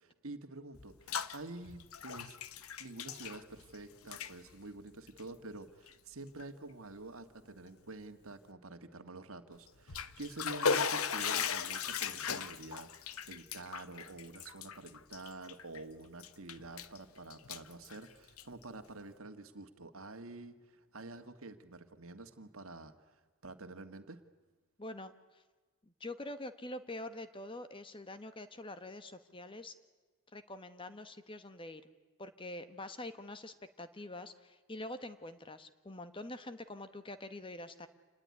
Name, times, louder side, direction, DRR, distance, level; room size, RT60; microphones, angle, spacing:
voice 1, 0.0-2.4 2.8-22.9 23.4-24.2, right 2 dB, 70° right, 8 dB, 1.8 m, -48 dB
Bathtub (filling or washing), 0.7-1.4 1.7-3.8 4.0-4.3 5.1-5.2 5.9-6.0 6.4-6.5 9.7-15.8 16.2-17.0 17.3-18.6, left 6 dB, 75° left, 1.1 m, -37 dB
voice 2, 24.8-25.4 25.8-29.7 30.3-31.8 32.2-37.9, left 1 dB, 25° left, 11 dB, 1.2 m, -45 dB
27.5 x 20.0 x 9.6 m, 1.3 s
head